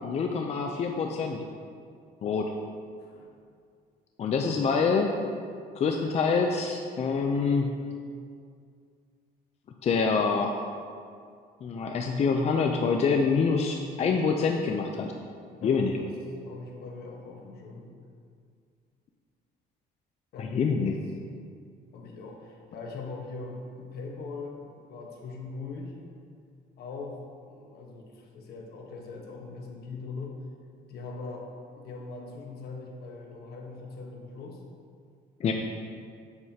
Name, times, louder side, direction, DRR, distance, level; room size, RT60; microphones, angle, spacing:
voice 1, 0.0-1.4 2.2-2.5 4.2-5.2 5.8-7.7 9.8-10.6 11.6-15.1 15.6-15.9 20.4-21.0 35.4-35.5, left 5 dB, 40° left, 3 dB, 0.5 m, -26 dB
voice 2, 15.6-16.1 16.4-17.9 20.3-20.5 21.9-25.9 26.8-30.4 30.9-31.5 31.8-34.6, left 3 dB, 70° left, 1 dB, 1.2 m, -41 dB
7.8 x 7.7 x 2.8 m, 2.2 s
cardioid pair, 110°, 17 cm